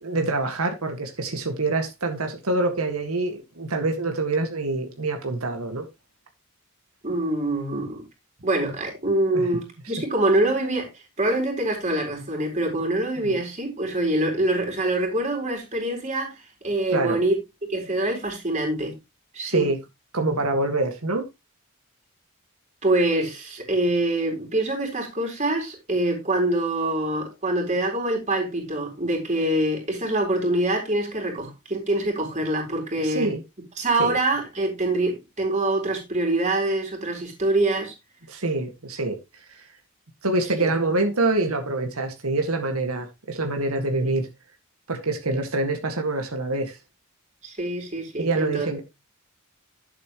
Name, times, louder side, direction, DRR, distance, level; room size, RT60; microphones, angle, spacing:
voice 1, 0.0-5.9 9.3-9.5 9.8-9.9 13.2-13.4 16.9-17.2 19.4-19.8 20.1-21.3 33.0-33.4 34.0-34.2 38.3-39.6 40.2-44.3 44.9-46.8 48.2-48.8, right 2 dB, 90° right, 1.9 m, -26 dB
voice 2, 7.0-8.0 8.4-10.9 11.2-16.3 16.6-17.4 17.7-19.0 19.3-19.7 22.8-33.3 33.8-37.9 40.6-40.7 44.0-44.1 47.4-48.7, right 1 dB, 35° right, 4.4 m, -25 dB
10.5 x 8.4 x 3.1 m
head